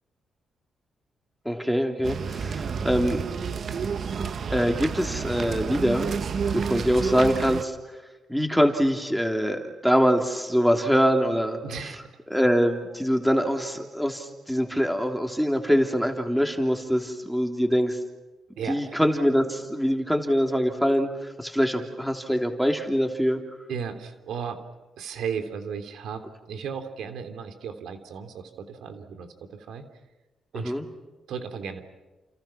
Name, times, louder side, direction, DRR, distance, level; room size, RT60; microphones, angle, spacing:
voice 1, 1.4-3.2 4.5-6.1 6.5-7.8 8.3-11.9 12.3-18.0 18.7-23.4 30.6-30.8, equal, ahead, 4 dB, 3.2 m, -24 dB
sound 1, 2.0-7.6, right 6 dB, 55° right, 1.1 m, -30 dB
voice 2, 11.6-12.0 18.6-19.0 23.7-24.6 25.0-29.9 30.5-30.7 31.3-31.8, right 7 dB, 85° right, 7 dB, 3.2 m, -35 dB
30.0 x 28.5 x 6.0 m, 1.1 s
cardioid pair, 100°, 0 cm